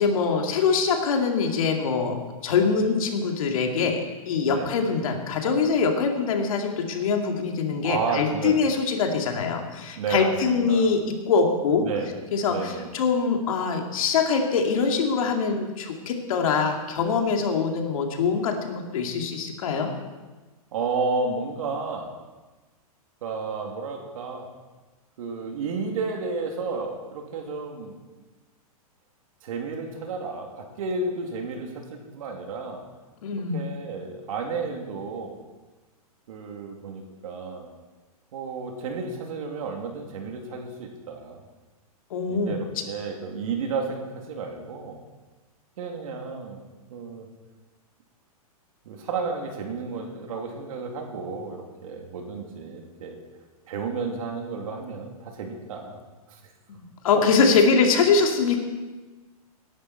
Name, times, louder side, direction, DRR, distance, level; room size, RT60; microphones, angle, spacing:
voice 1, 0.0-11.9 12.3-19.9 33.2-33.6 42.1-42.6 56.7-58.6, left 5 dB, 65° left, 2 dB, 2.4 m, -23 dB
voice 2, 7.8-8.7 9.9-10.9 11.8-12.1 12.5-12.9 20.7-22.1 23.2-24.5 25.2-27.9 29.4-32.9 33.5-35.4 36.3-37.7 38.3-41.4 42.3-45.0 45.8-46.6 46.9-47.3 48.8-53.2 53.7-56.0 56.3-56.4 57.1-57.2, right 4 dB, 65° right, 2 dB, 2.8 m, -32 dB
17.5 x 11.0 x 4.4 m, 1.2 s
hypercardioid pair, 145°, 19 cm